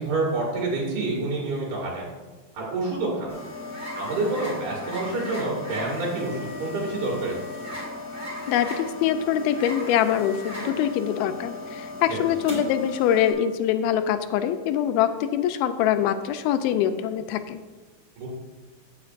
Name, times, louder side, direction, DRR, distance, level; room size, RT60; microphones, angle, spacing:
voice 1, 0.0-2.1 2.5-3.3 3.9-7.4 12.1-12.2 18.2-18.3, right 2 dB, 90° right, -6 dB, 4.2 m, -28 dB
sound 1, 3.3-13.3, left 2 dB, 15° right, 3.1 m, -36 dB
voice 2, 8.5-17.6, left 10 dB, 90° left, 9 dB, 2.5 m, -24 dB
16.5 x 7.2 x 2.5 m, 1.3 s
omnidirectional pair, 4.2 m